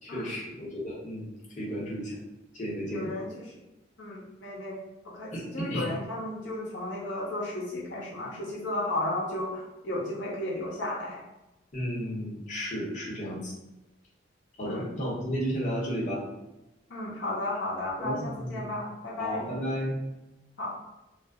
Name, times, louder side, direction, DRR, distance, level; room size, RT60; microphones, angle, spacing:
voice 1, 0.0-1.3 1.6-2.2 2.5-3.1 5.3-5.9 11.7-13.5 14.6-16.3 18.0-18.6 19.2-20.0, equal, 45° left, -6 dB, 0.9 m, -33 dB
voice 2, 2.9-3.5 4.0-4.8 5.0-11.2 14.6-14.9 16.9-19.5 20.6-20.8, left 1 dB, 80° left, -6 dB, 0.8 m, -34 dB
2.3 x 2.0 x 3.4 m, 0.96 s
head